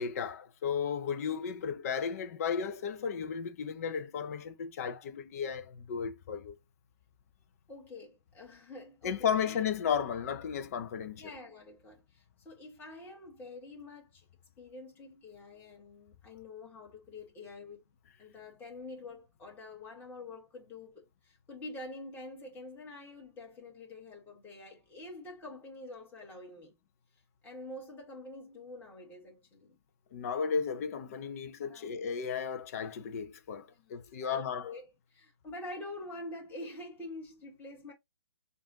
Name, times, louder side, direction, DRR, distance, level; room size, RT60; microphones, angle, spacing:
voice 1, 0.0-6.5 9.0-11.3 30.1-34.7, left 7 dB, 35° left, 0.6 m, -34 dB
voice 2, 7.7-9.6 11.2-14.2 14.6-17.8 18.2-26.8 27.4-29.7 31.6-31.9 33.7-37.9, left 2 dB, 15° left, 2.1 m, -47 dB
7.0 x 2.6 x 2.9 m
figure-of-eight pair, 130°, 14 cm